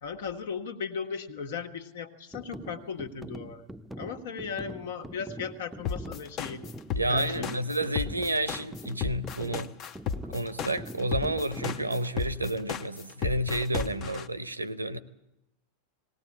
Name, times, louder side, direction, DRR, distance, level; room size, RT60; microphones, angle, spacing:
voice 1, 0.0-3.7 4.0-6.6 7.1-7.6, left 6 dB, 60° left, 1.6 m, -37 dB
sound 1, 2.3-12.0, right 1 dB, 5° right, 0.7 m, -44 dB
sound 2, 5.8-14.2, left 7 dB, 35° left, 0.9 m, -33 dB
voice 2, 7.0-9.7 10.3-15.0, right 1 dB, 80° right, 0.9 m, -30 dB
19.0 x 18.5 x 8.6 m
figure-of-eight pair, 90°, 0 cm